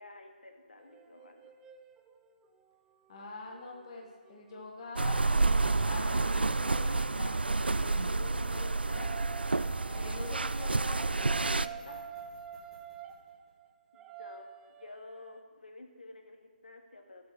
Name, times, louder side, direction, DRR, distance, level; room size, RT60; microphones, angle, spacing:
voice 1, 0.0-1.5 13.9-14.5 14.8-17.3, left 2 dB, 65° left, 2 dB, 2.0 m, -51 dB
sound 1, 0.8-5.9 7.9-15.4, right 7 dB, 10° right, 0.4 m, -49 dB
voice 2, 3.1-5.2 5.5-9.1 9.9-12.0, left 3 dB, 30° left, -1 dB, 1.7 m, -45 dB
sound 2, 5.0-11.7, right 3 dB, 75° right, 0.5 m, -29 dB
sound 3, 8.8-10.7 11.2-13.7, equal, 10° left, 2.6 m, -57 dB
13.5 x 7.8 x 6.7 m, 1.5 s
figure-of-eight pair, 150°, 6 cm